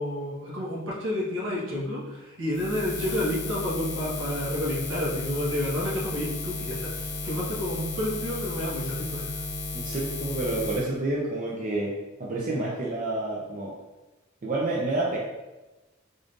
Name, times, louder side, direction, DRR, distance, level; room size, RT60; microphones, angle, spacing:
voice 1, 0.0-9.3, left 1 dB, 75° right, -6 dB, 1.3 m, -30 dB
Buzz, 2.5-10.9, left 2 dB, 60° left, 0.6 m, -34 dB
voice 2, 9.7-11.9 12.2-13.7 14.4-15.2, right 2 dB, 40° right, -4 dB, 0.5 m, -29 dB
3.7 x 2.6 x 3.6 m, 1.1 s
head